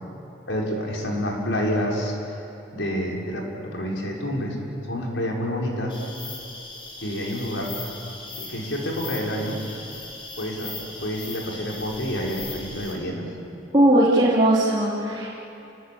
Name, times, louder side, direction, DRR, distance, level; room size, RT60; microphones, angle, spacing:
voice 1, 0.5-2.2 2.7-4.6 4.9-5.9 7.0-7.7 8.4-9.6 10.4-10.7 11.0-13.2, equal, 85° left, -2 dB, 5.4 m, -28 dB
sound 1, 5.9-13.0, left 3 dB, 30° left, 4.6 m, -38 dB
voice 2, 13.7-15.3, right 1 dB, 25° right, -7 dB, 3.4 m, -18 dB
28.5 x 20.0 x 8.7 m, 2.8 s
head